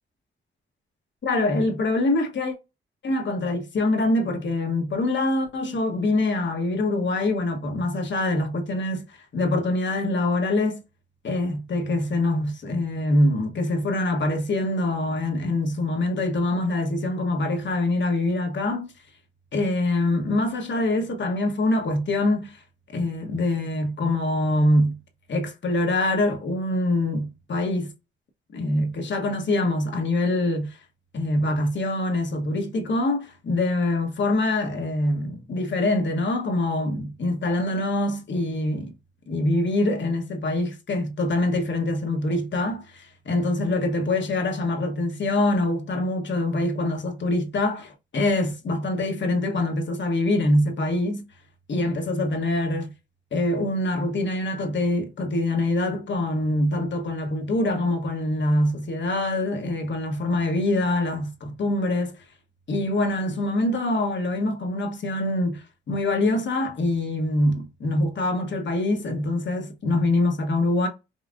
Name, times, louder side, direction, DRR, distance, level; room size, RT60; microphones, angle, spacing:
voice 1, 1.2-2.5 3.0-10.8 11.2-18.9 19.5-22.6 22.9-25.0 25.3-27.9 28.5-30.8 31.1-38.9 39.3-51.2 51.7-52.9 53.3-62.1 62.7-70.9, left 2 dB, 60° left, 1.3 m, -24 dB
5.5 x 2.4 x 2.6 m
cardioid pair, 60°, 21 cm